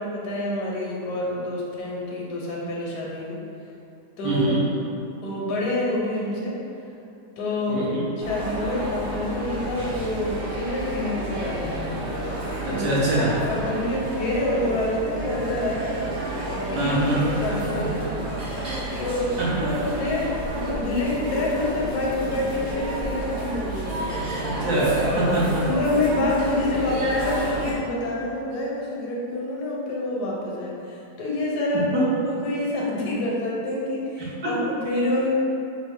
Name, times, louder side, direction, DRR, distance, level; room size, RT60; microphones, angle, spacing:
voice 1, 0.0-3.4 4.2-4.4 5.2-6.6 7.4-12.0 12.7-12.9 13.5-15.9 16.4-18.1 19.0-24.3 25.6-35.3, left 1 dB, 75° left, -4 dB, 1.2 m, -27 dB
voice 2, 4.2-4.6 7.7-8.1 12.6-13.3 16.8-17.4 17.7-17.8 19.4-19.7 24.4-25.6 31.9-32.0 34.2-34.3, right 2 dB, 65° right, -8 dB, 1.4 m, -24 dB
sound 1, 8.2-27.7, right 1 dB, 45° right, 0.9 m, -30 dB
4.4 x 2.4 x 3.6 m, 2.8 s
omnidirectional pair, 1.8 m